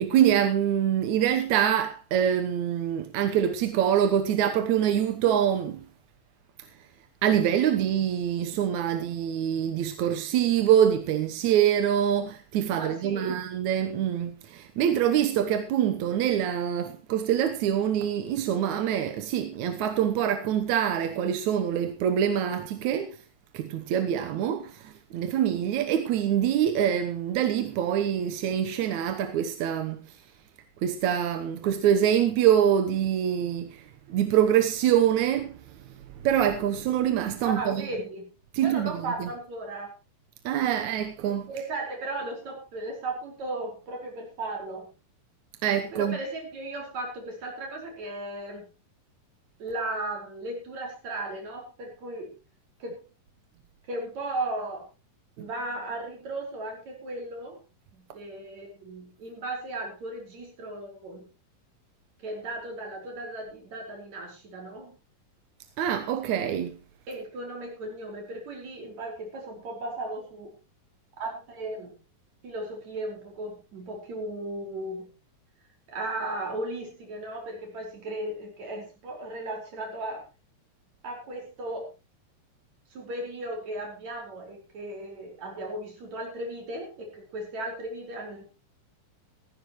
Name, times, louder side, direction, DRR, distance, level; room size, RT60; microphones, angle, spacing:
voice 1, 0.0-5.9 7.2-23.2 23.5-30.0 30.8-33.8 34.1-35.5 36.2-37.8 38.5-39.3 40.5-41.5 45.6-46.2 65.8-66.8, right 9 dB, 65° right, 2.1 m, -25 dB
voice 2, 12.8-13.4 37.4-38.3 38.6-39.9 41.5-44.9 45.9-48.7 49.6-52.3 52.8-53.0 53.9-54.9 55.4-57.6 57.9-61.3 62.2-65.0 67.1-70.6 71.2-72.0 72.4-75.1 75.9-80.2 81.0-81.9 82.9-88.4, right 2 dB, 50° right, 6.1 m, -36 dB
17.0 x 15.0 x 3.1 m
omnidirectional pair, 4.1 m